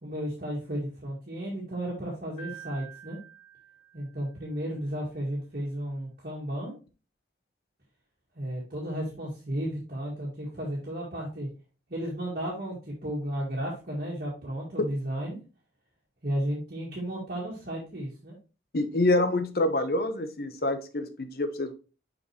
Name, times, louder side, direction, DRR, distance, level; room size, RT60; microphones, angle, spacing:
voice 1, 0.0-3.2 3.9-6.7 8.4-11.5 11.9-15.4 16.2-18.4, right 1 dB, 50° right, -5 dB, 1.9 m, -33 dB
Piano, 2.4-4.5, right 8 dB, 35° left, 3.7 m, -48 dB
voice 2, 18.7-21.7, left 2 dB, 55° left, 9 dB, 0.9 m, -26 dB
6.4 x 5.3 x 3.0 m, 0.32 s
head